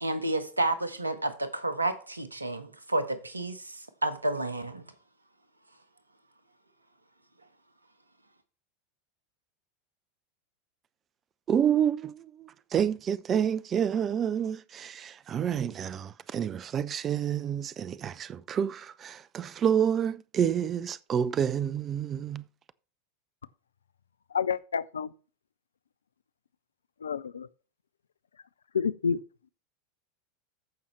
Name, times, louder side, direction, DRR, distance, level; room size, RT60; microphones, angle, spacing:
voice 1, 0.0-4.8, right 2 dB, 90° right, 1.1 m, -30 dB
voice 2, 11.5-22.4, right 8 dB, 30° right, 0.5 m, -29 dB
voice 3, 24.3-25.1 27.0-27.5 28.7-29.2, left 6 dB, 80° left, 0.4 m, -29 dB
14.5 x 5.5 x 3.2 m
figure-of-eight pair, 85°, 0 cm